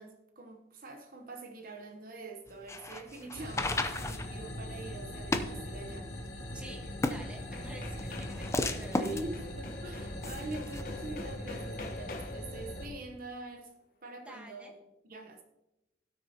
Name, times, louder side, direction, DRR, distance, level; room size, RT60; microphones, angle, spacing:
voice 1, 0.0-6.1 9.0-13.7 14.0-15.4, right 2 dB, 50° right, 4 dB, 0.9 m, -44 dB
sound 1, 2.5-10.8, left 2 dB, 15° left, 0.5 m, -36 dB
FX - golpes, 2.7-4.5 6.8-6.9 7.2-12.6, left 2 dB, 50° left, 1.1 m, -48 dB
sound 2, 3.3-12.9, left 1 dB, 70° left, 1.9 m, -41 dB
voice 2, 6.5-9.0 14.2-14.7, right 1 dB, 5° right, 1 dB, 1.3 m, -48 dB
16.5 x 6.3 x 2.8 m, 0.91 s
head